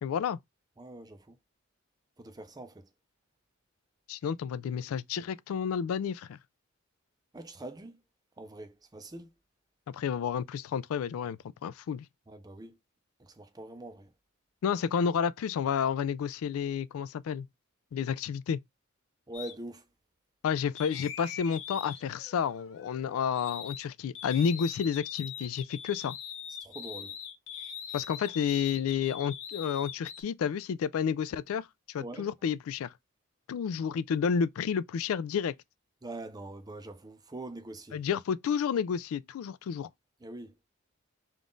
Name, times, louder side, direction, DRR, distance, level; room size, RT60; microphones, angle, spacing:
voice 1, 0.0-0.4 4.1-6.4 9.9-12.1 14.6-17.5 17.9-18.6 20.4-26.2 27.9-32.9 33.5-35.5 37.9-39.9, left 7 dB, 90° left, 0.3 m, -31 dB
voice 2, 0.8-1.4 2.2-2.9 7.3-8.0 8.4-9.3 12.3-12.8 13.2-14.1 19.3-19.9 26.6-27.2 32.0-32.3 36.0-38.0 40.2-40.5, right 2 dB, 20° right, 0.5 m, -43 dB
sound 1, 19.3-19.5 20.7-23.9 24.1-30.2, left 8 dB, 65° left, 0.7 m, -42 dB
3.6 x 2.4 x 3.7 m
head